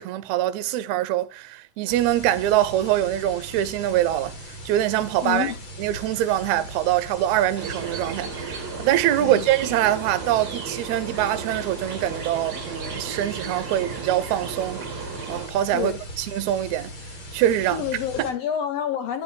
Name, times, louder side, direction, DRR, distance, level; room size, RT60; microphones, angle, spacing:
voice 1, 0.0-4.4 4.7-5.5 5.8-14.8 15.3-15.9 16.2-16.9 17.3-17.8 18.2-18.3, right 13 dB, 75° right, 1.8 m, -24 dB
sound 1, 1.9-18.3, equal, 40° left, 2.7 m, -39 dB
voice 2, 5.2-5.6 9.2-9.5 15.7-16.0 17.6-19.2, left 9 dB, 75° left, 1.5 m, -28 dB
sound 2, 7.6-15.5, right 5 dB, 45° right, 1.4 m, -35 dB
10.5 x 5.4 x 4.7 m
omnidirectional pair, 3.8 m